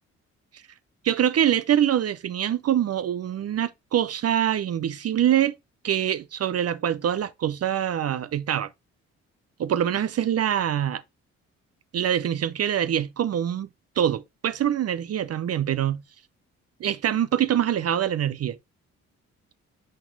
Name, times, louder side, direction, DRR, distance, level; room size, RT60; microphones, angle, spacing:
voice 1, 1.0-5.5 5.8-8.7 9.6-11.0 11.9-13.7 14.0-16.0 16.8-18.6, right 10 dB, 55° right, 0.6 m, -24 dB
6.4 x 4.0 x 4.5 m
supercardioid pair, 65°, 30 cm